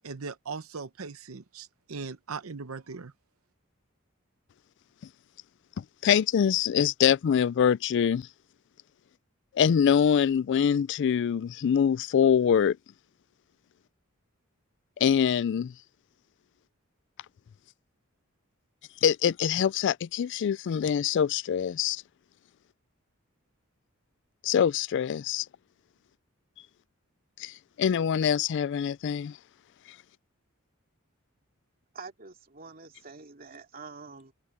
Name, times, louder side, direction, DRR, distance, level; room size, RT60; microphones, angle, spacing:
voice 1, 0.0-3.1, right 4 dB, 85° right, 0.8 m, -39 dB
voice 2, 5.8-8.3 9.5-12.8 15.0-15.7 19.0-22.0 24.4-25.5 27.4-29.4, left 8 dB, 60° left, 0.3 m, -24 dB
voice 3, 31.9-34.3, right 4 dB, 45° right, 2.5 m, -46 dB
head